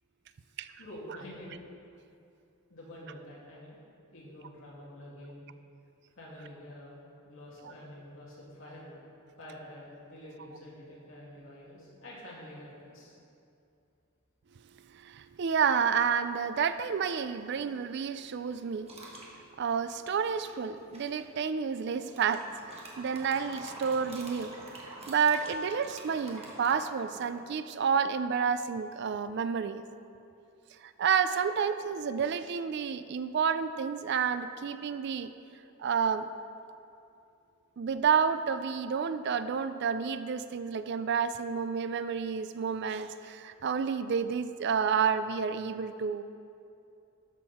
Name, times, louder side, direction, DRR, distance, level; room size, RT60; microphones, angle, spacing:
voice 1, 0.8-1.6 2.7-3.8 4.1-5.4 6.2-7.0 7.2-8.9 9.4-13.1, left 1 dB, 70° left, -6 dB, 2.6 m, -47 dB
voice 2, 14.9-18.9 19.6-24.5 25.1-29.8 30.8-35.3 35.8-36.3 37.8-46.2, right 6 dB, 55° right, 11 dB, 0.4 m, -30 dB
sound 1, 18.9-19.3 20.5-21.2 22.0-27.4, right 2 dB, 30° right, 1.3 m, -47 dB
13.0 x 6.5 x 4.2 m, 2.6 s
head